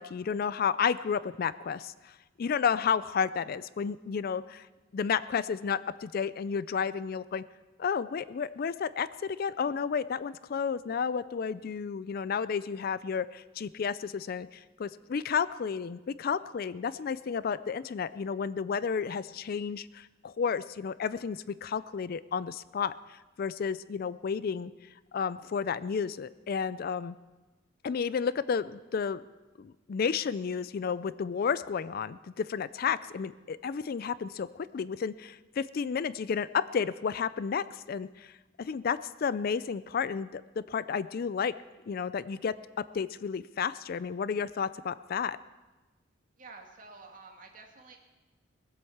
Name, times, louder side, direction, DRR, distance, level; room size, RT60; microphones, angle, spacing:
voice 1, 0.0-2.1 2.4-4.7 4.9-7.4 7.8-24.7 25.1-27.1 27.8-29.2 29.6-38.3 38.6-41.5 41.9-42.5 42.9-45.4, left 6 dB, 50° left, 16 dB, 0.4 m, -32 dB
voice 2, 46.3-48.0, right 3 dB, 45° right, 2 dB, 2.0 m, -50 dB
19.5 x 7.9 x 7.1 m, 1.2 s
head